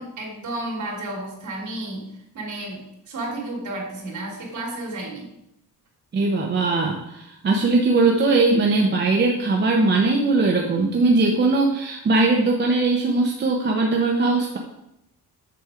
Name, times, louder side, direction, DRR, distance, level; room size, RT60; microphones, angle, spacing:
voice 1, 0.0-2.1 2.3-5.3, right 2 dB, 50° right, -3 dB, 3.4 m, -32 dB
voice 2, 6.1-14.6, right 3 dB, 25° right, 0 dB, 0.8 m, -20 dB
7.7 x 7.0 x 5.0 m, 0.83 s
cardioid pair, 180°, 39 cm